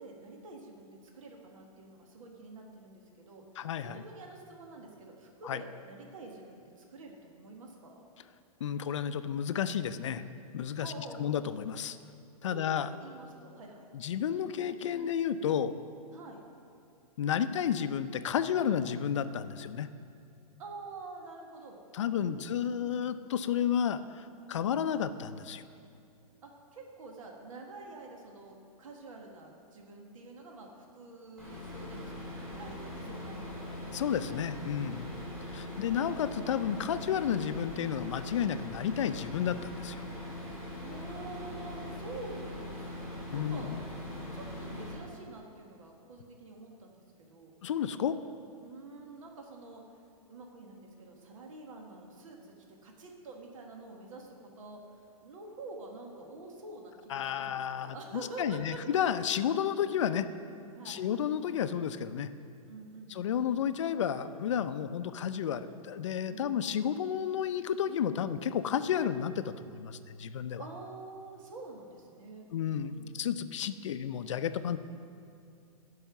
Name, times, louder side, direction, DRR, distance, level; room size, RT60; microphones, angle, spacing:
voice 1, 0.0-3.4 3.8-8.0 10.8-11.4 12.4-13.9 16.1-16.4 20.6-21.8 22.2-23.1 24.5-24.7 26.4-33.7 35.0-35.7 40.7-43.7 44.3-46.9 47.3-47.5 48.6-49.8 50.3-52.5 52.8-58.8 59.4-59.5 60.7-61.0 62.7-63.4 66.3-66.6 70.6-72.5 72.9-73.1, right 3 dB, 60° right, 1 dB, 1.5 m, -47 dB
voice 2, 3.6-4.0 5.4-5.6 8.6-10.2 10.5-12.0 12.4-12.9 13.9-15.7 17.2-19.9 21.9-25.6 33.9-35.1 35.5-40.1 43.3-43.8 47.6-48.2 57.1-58.0 58.4-60.3 60.9-62.3 63.1-70.6 72.5-74.8, left 8 dB, 55° left, 12 dB, 0.5 m, -32 dB
sound 1, 31.4-44.9, left 1 dB, 10° right, 3.0 m, -41 dB
14.5 x 5.6 x 5.9 m, 2.5 s
hypercardioid pair, 180°, 19 cm